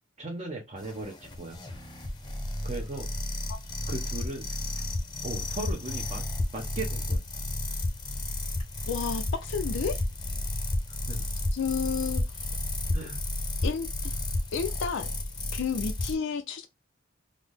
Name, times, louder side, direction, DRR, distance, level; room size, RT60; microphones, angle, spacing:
voice 1, 0.2-1.6 2.6-3.1 3.9-4.6 5.2-6.2 6.5-7.2 11.1-11.2 12.9-13.2, right 2 dB, 35° right, 0.7 m, -37 dB
sound 1, 0.8-16.1, left 1 dB, 20° left, 0.7 m, -32 dB
voice 2, 8.9-10.0 11.5-12.4 13.6-14.2 14.5-15.1 15.5-16.7, left 6 dB, 65° left, 0.4 m, -31 dB
3.8 x 2.0 x 3.3 m
head